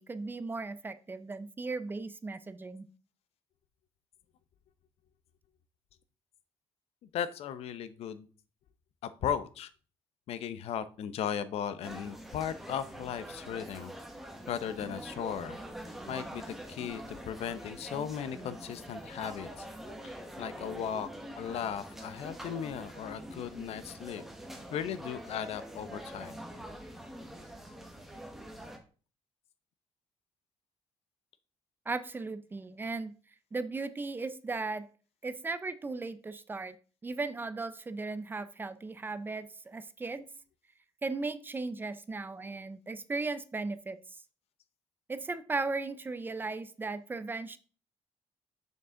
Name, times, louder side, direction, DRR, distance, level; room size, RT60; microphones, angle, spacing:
voice 1, 0.0-2.8 31.9-33.1 33.5-34.9 35.2-36.8 37.0-40.3 41.0-44.0 45.1-47.6, right 3 dB, 20° right, 13 dB, 0.5 m, -36 dB
voice 2, 7.1-8.3 9.0-9.7 10.3-13.9 14.5-15.6 16.1-19.7 20.0-20.1 20.4-21.1 21.4-24.2 24.7-26.3, left 8 dB, 70° left, 14 dB, 0.7 m, -36 dB
sound 1, 11.8-28.8, right 1 dB, ahead, 1.3 m, -45 dB
6.7 x 6.6 x 3.7 m, 0.38 s
cardioid pair, 145°, 11 cm